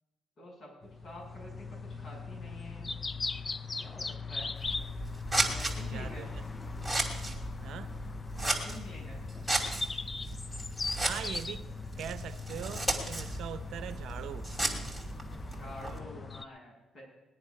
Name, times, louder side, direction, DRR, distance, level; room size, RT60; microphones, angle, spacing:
voice 1, 0.4-2.9 3.8-4.5 5.5-6.3 8.4-9.2 15.5-17.0, equal, 50° left, -3 dB, 7.4 m, -48 dB
sound 1, 0.8-16.4, left 4 dB, 30° left, 0.4 m, -40 dB
Scissors, 4.6-16.0, right 2 dB, ahead, 2.6 m, -35 dB
voice 2, 5.9-6.4 7.6-8.0 10.9-11.7 12.0-14.5, right 9 dB, 75° right, 11 dB, 0.7 m, -41 dB
20.0 x 9.7 x 5.3 m, 0.97 s
cardioid pair, 90°, 0 cm